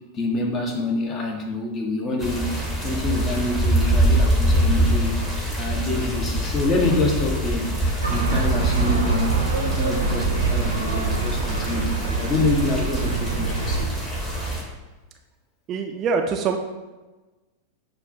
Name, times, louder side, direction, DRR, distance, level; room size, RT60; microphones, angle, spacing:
voice 1, 0.1-5.2 5.6-7.7 8.1-13.9, left 2 dB, 30° left, 1 dB, 0.7 m, -26 dB
sound 1, 2.2-14.6, right 1 dB, 10° left, 1.1 m, -24 dB
sound 2, 8.0-13.9, right 4 dB, 80° right, 0.6 m, -25 dB
voice 2, 15.7-16.6, right 5 dB, 35° right, 4 dB, 0.3 m, -24 dB
6.6 x 2.3 x 2.6 m, 1.2 s
figure-of-eight pair, 90°, 0 cm